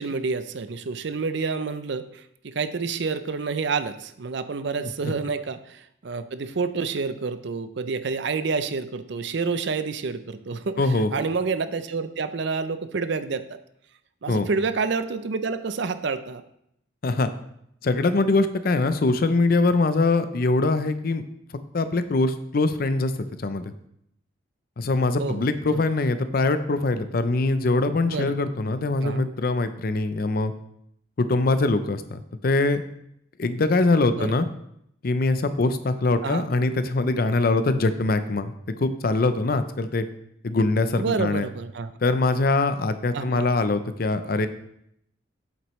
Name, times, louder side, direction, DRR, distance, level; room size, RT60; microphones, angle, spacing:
voice 1, 0.0-2.1 2.4-13.4 14.2-16.4 25.2-25.8 28.0-28.4 29.0-29.3 34.1-34.4 36.2-36.4 41.0-41.9 43.1-43.5, right 4 dB, 60° right, 11 dB, 0.5 m, -28 dB
voice 2, 10.8-11.1 14.3-14.5 17.0-17.3 17.8-21.2 21.7-23.1 23.4-23.7 24.8-30.5 31.2-32.8 33.4-34.5 35.0-38.5 38.8-40.1 40.4-41.5 42.0-44.5, left 3 dB, 50° left, 11 dB, 0.5 m, -23 dB
8.0 x 7.4 x 3.1 m, 0.74 s
head